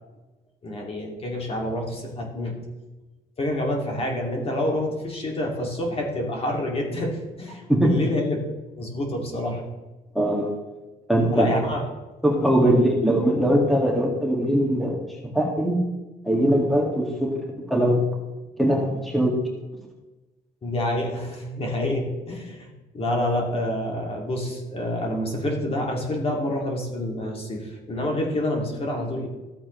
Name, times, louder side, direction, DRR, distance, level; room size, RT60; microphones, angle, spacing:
voice 1, 0.6-2.6 3.4-8.4 8.8-9.6 11.3-11.9 12.6-12.7 20.6-29.3, left 1 dB, 35° left, 0 dB, 2.4 m, -27 dB
voice 2, 10.1-10.5 11.1-11.5 12.2-15.8 16.2-17.4 17.7-18.0 18.6-19.3, equal, ahead, -1 dB, 2.0 m, -21 dB
13.5 x 7.8 x 3.2 m, 1.1 s
cardioid pair, 110°, 17 cm